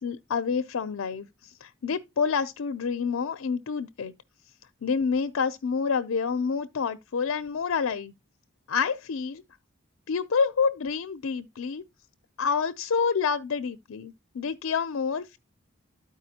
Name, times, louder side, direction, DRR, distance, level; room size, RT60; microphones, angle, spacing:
voice 1, 0.0-4.1 4.8-8.1 8.7-9.4 10.1-11.8 12.4-15.4, left 5 dB, 90° left, 0.5 m, -28 dB
13.0 x 4.7 x 2.8 m
head